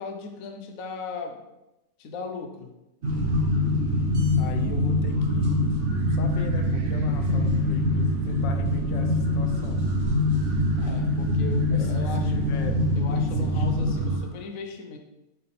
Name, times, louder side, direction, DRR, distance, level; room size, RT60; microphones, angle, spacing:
voice 1, 0.0-1.4 2.0-2.7 10.8-12.4 13.0-15.0, left 4 dB, 60° left, 4 dB, 1.0 m, -37 dB
sound 1, 3.0-14.2, left 1 dB, 50° right, 1.2 m, -24 dB
voice 2, 4.4-5.7 6.1-9.8 11.7-12.8 13.4-13.7, left 5 dB, 85° left, 5 dB, 1.4 m, -39 dB
6.7 x 3.5 x 4.2 m, 0.93 s
omnidirectional pair, 1.9 m